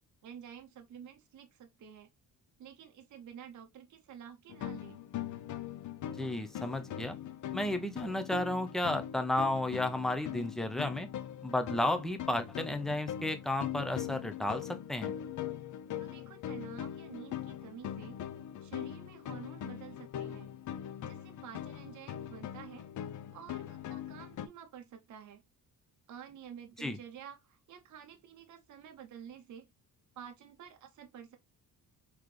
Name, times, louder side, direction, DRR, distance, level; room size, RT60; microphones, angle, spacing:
voice 1, 0.2-2.1 2.6-5.0 16.0-18.2 18.6-20.5 21.0-22.9 23.3-25.4 26.1-29.7 30.2-31.4, right 8 dB, 50° right, 0.8 m, -50 dB
sound 1, 4.5-24.5, left 10 dB, 55° left, 0.6 m, -41 dB
voice 2, 6.2-7.2 7.5-11.1 11.4-15.1 26.8-27.0, left 1 dB, ahead, 0.5 m, -33 dB
4.0 x 2.9 x 3.2 m
cardioid pair, 130°, 37 cm